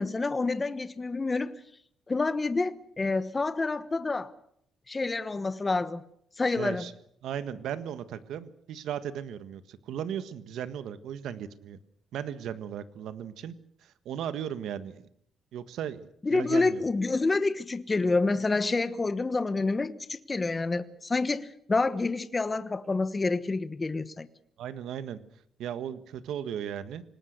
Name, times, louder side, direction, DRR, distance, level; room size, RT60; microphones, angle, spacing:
voice 1, 0.0-1.5 2.1-4.3 4.9-6.0 6.4-6.9 16.2-24.3, left 3 dB, 20° left, 13 dB, 1.1 m, -28 dB
voice 2, 6.6-6.9 7.2-11.8 12.1-13.5 13.8-15.1 15.5-16.8 24.6-25.2 25.6-27.0, right 9 dB, 85° right, 13 dB, 1.5 m, -36 dB
26.5 x 19.5 x 6.6 m, 0.68 s
cardioid pair, 135°, 0 cm